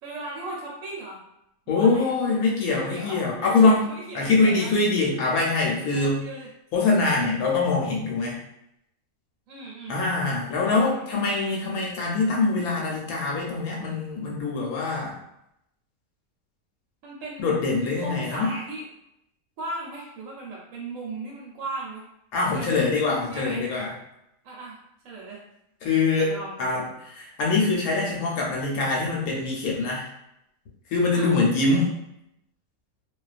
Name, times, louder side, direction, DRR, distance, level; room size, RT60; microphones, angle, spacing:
voice 1, 0.0-1.2 1.7-2.1 2.7-4.7 5.9-6.5 9.5-10.0 10.6-11.1 17.0-17.6 18.0-18.9 19.6-22.0 22.4-22.8 23.3-23.6 24.4-24.8 25.0-25.4 26.2-26.8 31.1-31.4, right 2 dB, 70° right, -4 dB, 0.9 m, -37 dB
voice 2, 1.7-3.8 4.1-6.2 6.7-8.4 9.9-15.1 17.4-18.5 22.3-23.9 25.8-26.3 26.6-30.1 30.9-31.9, left 3 dB, 85° left, -3 dB, 1.0 m, -23 dB
2.3 x 2.2 x 2.4 m, 0.81 s
omnidirectional pair, 1.5 m